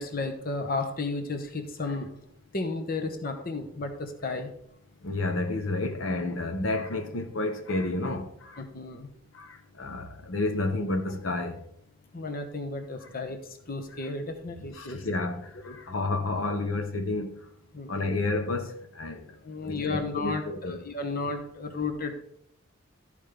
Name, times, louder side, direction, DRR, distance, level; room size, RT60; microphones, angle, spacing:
voice 1, 0.0-2.1 2.5-4.5 8.6-9.1 12.1-15.3 15.6-15.8 17.7-17.9 19.4-22.1, left 3 dB, 50° left, 1.0 m, -33 dB
voice 2, 5.0-8.6 9.3-11.6 13.0-13.1 14.7-17.3 17.9-19.2 19.6-20.8, left 2 dB, 80° left, 0.9 m, -30 dB
13.0 x 5.1 x 3.4 m
head